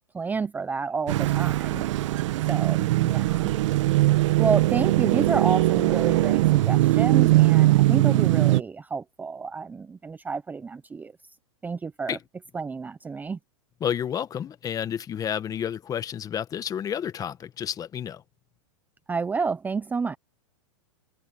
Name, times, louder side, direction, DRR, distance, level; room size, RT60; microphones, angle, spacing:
voice 1, 0.1-1.8 2.5-3.6 4.4-11.1 11.6-12.2 12.5-13.4 19.1-20.2, right 5 dB, 10° right, 0.7 m, -30 dB
sound 1, 1.1-8.6, right 17 dB, 65° right, 1.8 m, -21 dB
voice 2, 13.8-18.2, left 9 dB, 20° left, 1.3 m, -30 dB
hypercardioid pair, 135°, 17 cm